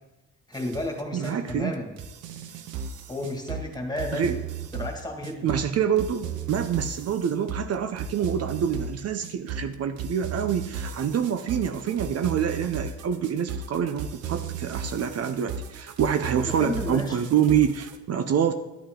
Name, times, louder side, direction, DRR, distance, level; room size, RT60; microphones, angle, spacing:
voice 1, 0.5-1.9 3.1-4.3 4.7-5.6 16.4-17.3, left 1 dB, 15° left, 2 dB, 2.1 m, -32 dB
sound 1, 0.5-18.0, right 6 dB, 80° right, 0.9 m, -35 dB
voice 2, 1.1-1.7 4.1-4.4 5.4-18.5, right 8 dB, 55° right, 9 dB, 0.7 m, -26 dB
11.5 x 8.5 x 3.8 m, 1.1 s
cardioid pair, 90°, 30 cm